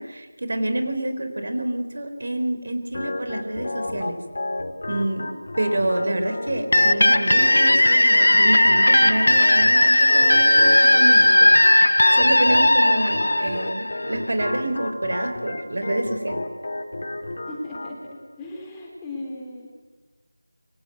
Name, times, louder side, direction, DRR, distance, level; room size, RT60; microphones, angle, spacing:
voice 1, 0.0-4.2 4.9-5.3 5.6-11.5 12.1-16.4, right 1 dB, 50° right, 7 dB, 4.4 m, -27 dB
Organ, 2.9-18.0, left 2 dB, 45° left, 3.9 m, -32 dB
sound 1, 6.7-14.3, left 1 dB, 75° left, 1.0 m, -16 dB
voice 2, 17.5-18.0 18.4-19.7, left 2 dB, 10° left, -3 dB, 3.5 m, -36 dB
28.0 x 25.0 x 8.2 m, 1.3 s
figure-of-eight pair, 170°, 0 cm